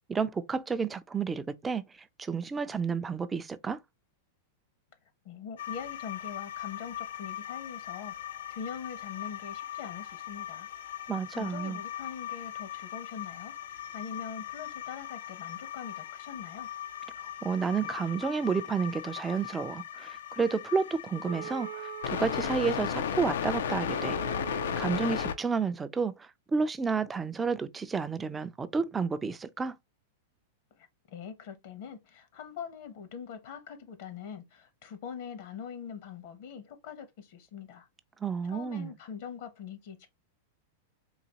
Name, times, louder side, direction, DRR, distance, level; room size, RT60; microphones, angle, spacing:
voice 1, 0.0-1.8 2.2-3.8 11.1-11.8 17.4-24.2 24.5-29.8 38.2-38.9, right 5 dB, 15° right, 0.4 m, -31 dB
voice 2, 5.2-8.2 8.5-10.7 11.3-16.7 30.8-37.9 38.4-40.1, left 7 dB, 60° left, 0.9 m, -43 dB
sound 1, 5.6-25.3, left 9 dB, 85° left, 0.4 m, -37 dB
Wind instrument woodwind instrument, 21.2-25.4, right 11 dB, 85° right, 0.5 m, -43 dB
3.9 x 2.7 x 2.8 m
supercardioid pair, 145°, 0 cm